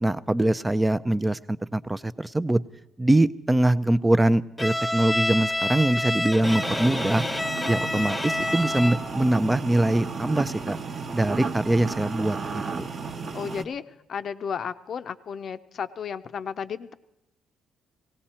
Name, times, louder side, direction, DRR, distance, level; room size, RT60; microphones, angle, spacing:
voice 1, 0.0-2.6 3.0-7.2 7.7-10.8 11.1-12.9, right 1 dB, 15° right, 14 dB, 0.5 m, -23 dB
Bowed string instrument, 4.6-9.1, left 1 dB, 15° left, 0.9 m, -28 dB
sound 1, 6.4-13.6, right 4 dB, 45° right, 1.0 m, -33 dB
voice 2, 13.3-13.8 14.1-16.9, left 7 dB, 55° left, 11 dB, 0.6 m, -33 dB
18.0 x 17.0 x 4.3 m, 0.91 s
cardioid pair, 90°, 0 cm